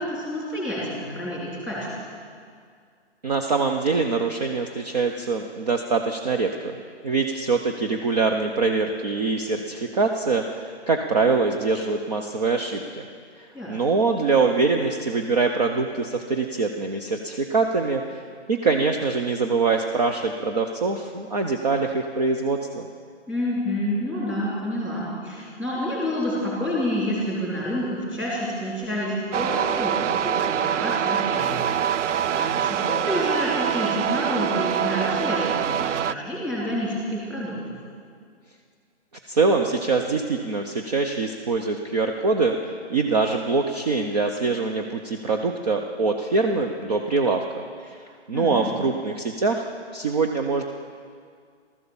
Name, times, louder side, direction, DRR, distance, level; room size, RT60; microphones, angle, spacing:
voice 1, 0.0-1.9 13.5-13.9 23.3-37.7 48.3-48.7, equal, 5° right, -6 dB, 3.0 m, -28 dB
voice 2, 3.2-6.7 7.0-13.1 13.7-18.0 18.5-22.8 39.3-48.0 48.3-50.6, right 4 dB, 35° right, 3 dB, 0.8 m, -24 dB
sound 1, 29.3-36.1, right 9 dB, 90° right, 0.5 m, -24 dB
15.0 x 13.5 x 7.1 m, 2.1 s
hypercardioid pair, 165°, 35 cm